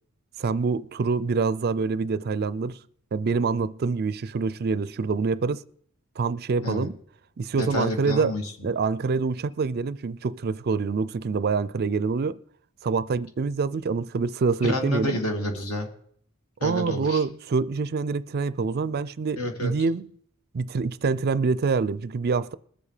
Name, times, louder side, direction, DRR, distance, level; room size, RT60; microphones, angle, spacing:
voice 1, 0.4-2.8 3.1-5.6 6.2-7.0 7.4-8.3 8.6-12.4 12.8-15.2 16.6-20.1 20.5-22.5, right 4 dB, 45° right, 0.4 m, -26 dB
voice 2, 7.6-8.7 14.6-15.9 16.6-17.2 19.4-19.7, left 1 dB, 70° left, 2.4 m, -29 dB
20.5 x 7.4 x 5.0 m
head